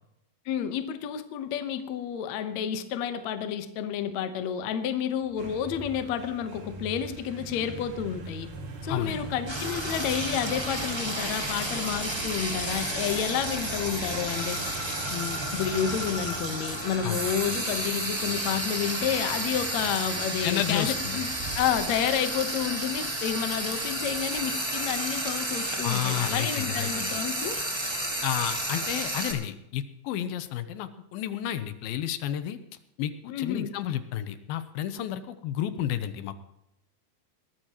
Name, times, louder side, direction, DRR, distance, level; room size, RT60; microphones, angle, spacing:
voice 1, 0.5-8.5 8.8-21.3 21.6-27.6 33.3-33.7, left 9 dB, 65° left, 9 dB, 1.9 m, -30 dB
sound 1, 5.2-22.4, right 3 dB, 85° right, 4.1 m, -42 dB
voice 2, 8.9-9.2 17.0-17.3 20.4-21.2 25.8-27.1 28.2-32.6 33.0-36.4, left 11 dB, 85° left, 11 dB, 2.7 m, -31 dB
Frying (food), 9.5-29.3, right 1 dB, 25° right, 0.5 m, -32 dB
sound 2, 14.1-16.7 17.0-19.3, equal, 40° right, 5.0 m, -41 dB
21.0 x 14.0 x 3.0 m, 0.82 s
omnidirectional pair, 4.2 m